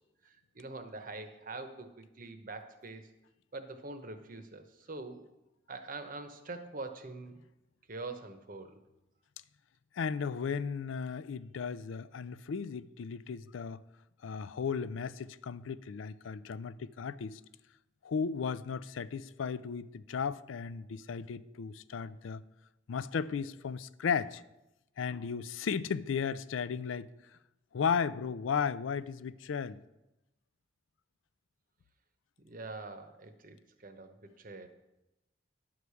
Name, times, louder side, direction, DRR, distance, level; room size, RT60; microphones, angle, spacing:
voice 1, 0.2-3.1 3.5-5.2 5.7-7.3 7.9-8.8 32.4-34.7, right 3 dB, 45° right, 0.9 m, -44 dB
voice 2, 9.9-13.8 14.2-17.4 18.0-22.4 22.9-24.4 25.0-27.1 27.7-29.8, left 6 dB, 85° left, 0.4 m, -35 dB
11.0 x 4.9 x 6.9 m
head